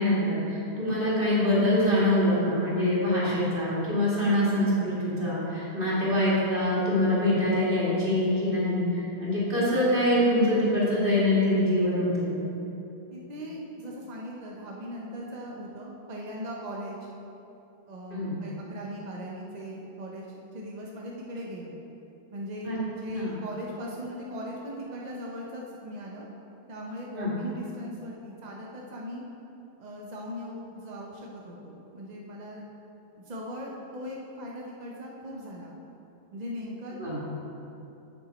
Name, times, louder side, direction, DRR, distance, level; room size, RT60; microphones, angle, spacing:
voice 1, 0.0-12.3 18.1-18.4 22.6-22.8 23.1-23.4 27.2-27.3 37.0-37.2, left 1 dB, 30° right, -8 dB, 2.3 m, -24 dB
voice 2, 13.1-17.1 17.9-21.8 22.3-26.3 26.7-29.2 29.8-32.7 33.2-35.7 36.3-37.0, equal, 45° right, -2 dB, 0.5 m, -39 dB
8.0 x 7.9 x 4.2 m, 2.9 s
omnidirectional pair, 1.8 m